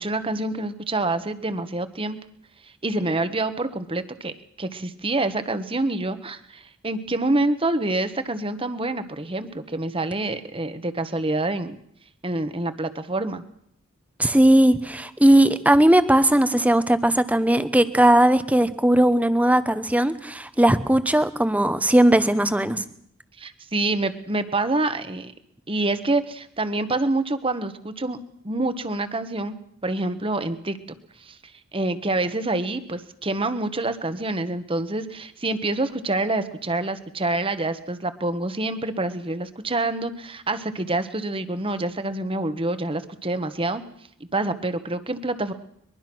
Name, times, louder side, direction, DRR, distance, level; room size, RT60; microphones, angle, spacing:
voice 1, 0.0-2.2 2.8-11.7 12.2-13.4 23.4-25.3 25.7-28.2 28.4-29.6 29.8-30.8 31.2-31.4 31.7-43.8 44.3-45.5, right 2 dB, 25° right, 11 dB, 1.3 m, -26 dB
voice 2, 14.2-22.8, right 1 dB, 5° right, 12 dB, 0.9 m, -18 dB
23.0 x 22.0 x 6.2 m, 0.70 s
head